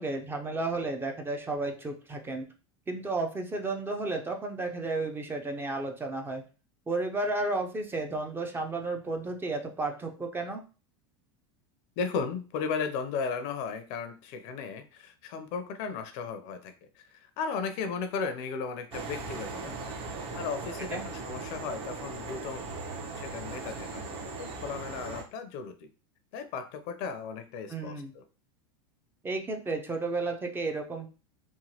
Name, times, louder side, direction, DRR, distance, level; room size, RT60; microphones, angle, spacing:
voice 1, 0.0-2.5 2.9-6.4 6.9-10.6 20.9-21.0 27.7-28.1 29.2-31.1, right 2 dB, 15° right, 3 dB, 0.5 m, -32 dB
voice 2, 12.0-19.9 20.3-22.7 23.2-24.1 24.4-25.9 26.3-28.2, left 5 dB, 55° left, 9 dB, 0.5 m, -35 dB
sound 1, 18.9-25.2, right 3 dB, 40° right, 0.8 m, -39 dB
3.0 x 2.1 x 2.8 m, 0.34 s
supercardioid pair, 110°, 14 cm